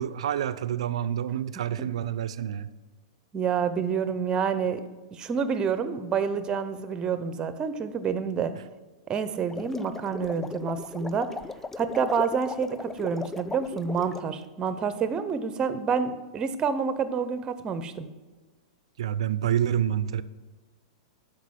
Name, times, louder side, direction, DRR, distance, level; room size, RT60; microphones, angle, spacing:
voice 1, 0.0-2.7 19.0-20.2, right 10 dB, 70° right, 15 dB, 0.5 m, -28 dB
voice 2, 3.3-4.8 5.1-8.5 9.1-11.3 11.8-18.1, right 6 dB, 25° right, 11 dB, 0.8 m, -28 dB
sound 1, 9.4-14.3, left 3 dB, 10° left, 0.3 m, -38 dB
12.5 x 5.0 x 5.9 m, 1.3 s
hypercardioid pair, 110°, 3 cm